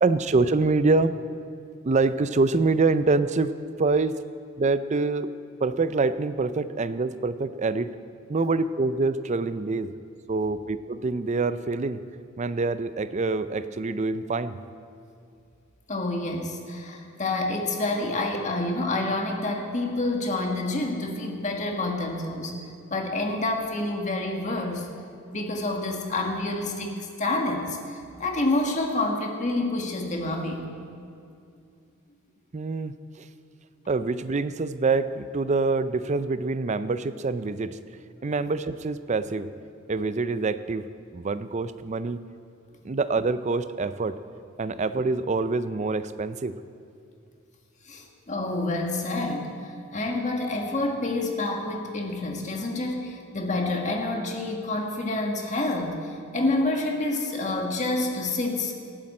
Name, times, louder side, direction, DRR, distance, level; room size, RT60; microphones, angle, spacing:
voice 1, 0.0-1.2 1.8-3.5 3.8-4.2 4.6-5.3 5.6-7.9 8.3-9.9 10.3-12.0 12.4-14.6 32.5-33.3 33.9-37.8 38.2-39.5 39.9-40.9 41.1-42.2 42.8-44.2 44.6-46.6, right 3 dB, 35° right, 13 dB, 0.5 m, -25 dB
voice 2, 15.9-22.5 22.9-24.9 25.3-30.6 47.9-58.7, left 2 dB, 35° left, 2 dB, 1.6 m, -28 dB
18.5 x 13.5 x 4.3 m, 2.4 s
head